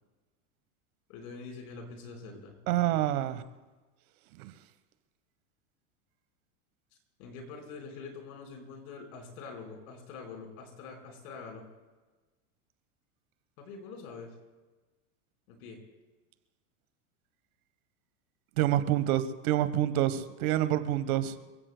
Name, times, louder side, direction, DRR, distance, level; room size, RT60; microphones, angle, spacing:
voice 1, 1.1-3.0 7.2-11.6 13.6-14.3 15.5-15.8, left 4 dB, 70° left, 4.6 m, -45 dB
voice 2, 2.7-3.4 4.4-4.5 18.6-21.3, right 13 dB, 70° right, 1.2 m, -27 dB
28.0 x 16.0 x 2.2 m
supercardioid pair, 120°, 45 cm